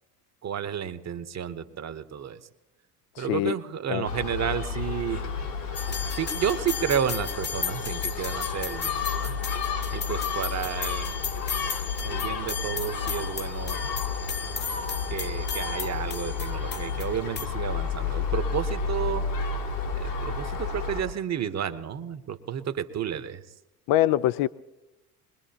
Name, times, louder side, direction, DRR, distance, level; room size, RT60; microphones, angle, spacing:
voice 1, 0.4-2.4 3.2-5.2 6.2-9.4 9.9-11.2 12.0-13.8 15.1-19.2 19.9-23.4, right 8 dB, 35° right, 11 dB, 1.1 m, -31 dB
voice 2, 3.2-3.5 3.9-4.1 23.9-24.5, left 14 dB, 50° left, 16 dB, 0.5 m, -23 dB
Gull seagull, 4.0-21.0, left 5 dB, 80° left, 2.9 m, -31 dB
sound 1, 5.8-17.5, left 6 dB, 25° left, 0.8 m, -35 dB
22.5 x 21.0 x 2.9 m, 1.0 s
hypercardioid pair, 65°, 46 cm